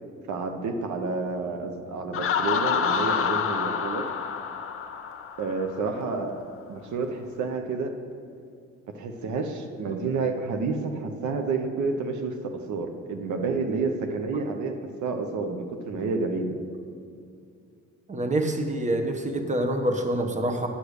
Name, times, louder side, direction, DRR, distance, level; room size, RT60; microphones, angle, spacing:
voice 1, 0.3-4.1 5.4-6.4 6.7-7.9 8.9-14.8 15.0-16.6, right 4 dB, 75° right, 5 dB, 0.9 m, -29 dB
Laughter, 2.1-5.8, left 7 dB, 45° left, 0.7 m, -27 dB
voice 2, 18.1-20.7, right 1 dB, 25° right, 4 dB, 1.1 m, -26 dB
10.0 x 5.0 x 6.5 m, 2.4 s
cardioid pair, 90°, 30 cm